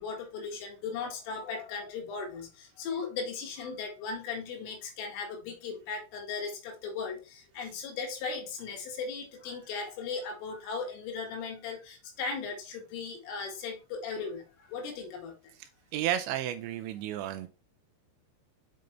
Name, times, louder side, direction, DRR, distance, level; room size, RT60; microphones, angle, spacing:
voice 1, 0.0-14.4 14.7-15.3, left 5 dB, 85° left, 3 dB, 4.3 m, -37 dB
voice 2, 15.6-17.5, right 11 dB, 85° right, 8 dB, 2.7 m, -33 dB
7.7 x 5.3 x 3.1 m, 0.32 s
omnidirectional pair, 5.6 m